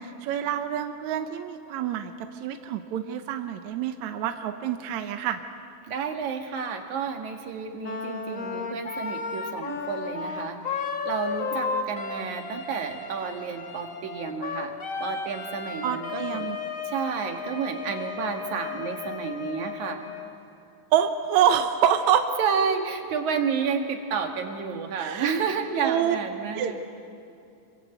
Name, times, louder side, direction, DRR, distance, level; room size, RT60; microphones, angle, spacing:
voice 1, 0.0-2.1 2.4-5.4 15.8-16.6 20.9-22.3 25.0-25.3 25.8-26.2 26.5-26.7, right 9 dB, 75° right, 7 dB, 1.8 m, -26 dB
voice 2, 5.9-14.7 15.0-16.5 16.8-20.0 22.4-26.8, right 6 dB, 60° right, 4 dB, 2.9 m, -30 dB
Wind instrument woodwind instrument, 7.8-20.3, left 5 dB, 80° left, 0.7 m, -34 dB
27.0 x 23.5 x 8.1 m, 2.6 s
omnidirectional pair, 4.3 m